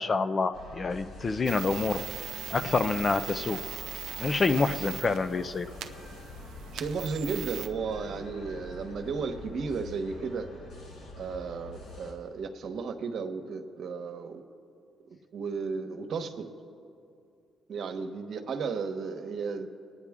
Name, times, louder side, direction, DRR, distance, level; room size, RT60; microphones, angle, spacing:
voice 1, 0.0-2.0 2.5-3.6 4.2-5.7, left 3 dB, 35° left, 11 dB, 0.6 m, -27 dB
sound 1, 0.5-12.1, left 2 dB, 75° left, 4.1 m, -45 dB
sound 2, 1.5-7.7, right 10 dB, 80° right, 0.6 m, -40 dB
voice 2, 6.7-10.5 11.1-14.4 15.3-16.5 17.7-19.7, right 5 dB, 65° right, 6 dB, 1.1 m, -34 dB
25.5 x 9.6 x 3.6 m, 2.5 s
cardioid pair, 90°, 0 cm